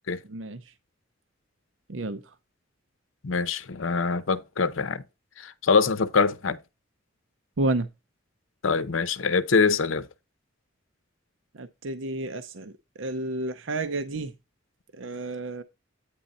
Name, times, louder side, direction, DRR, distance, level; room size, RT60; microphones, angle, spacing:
voice 1, 0.3-0.6 1.9-2.2 7.6-7.9 11.5-12.7 13.0-14.3 15.0-15.6, right 2 dB, 75° right, 0.7 m, -30 dB
voice 2, 3.2-5.0 5.4-6.6 8.6-10.1, left 4 dB, 85° left, 0.8 m, -24 dB
9.1 x 3.7 x 4.1 m
head